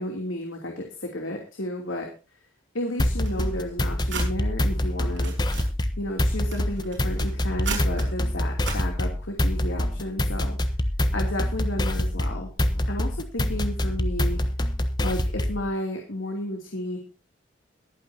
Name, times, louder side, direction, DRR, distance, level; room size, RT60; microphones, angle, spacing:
voice 1, 0.0-2.1 2.7-5.3 6.0-10.6 11.1-12.5 12.9-14.4 15.0-17.0, left 1 dB, 85° left, 1 dB, 3.0 m, -32 dB
sound 1, 3.0-15.7, left 1 dB, 20° left, 1.0 m, -26 dB
sound 2, 3.2-4.3 4.9-5.7 6.2-8.1 8.6-8.8, right 4 dB, 65° right, 5.9 m, -36 dB
22.0 x 9.2 x 2.8 m, 0.32 s
head